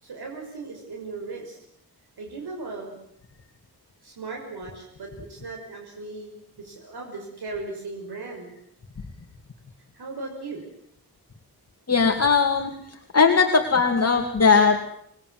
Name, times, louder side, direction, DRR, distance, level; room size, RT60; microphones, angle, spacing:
voice 1, 0.0-1.6 2.2-2.9 4.0-6.3 6.6-8.5 9.9-10.6, right 3 dB, 90° right, 1 dB, 5.9 m, -37 dB
voice 2, 11.9-12.7 13.1-14.8, left 5 dB, 40° left, 3 dB, 2.5 m, -19 dB
28.0 x 21.0 x 7.9 m, 0.71 s
wide cardioid pair, 145°, 38 cm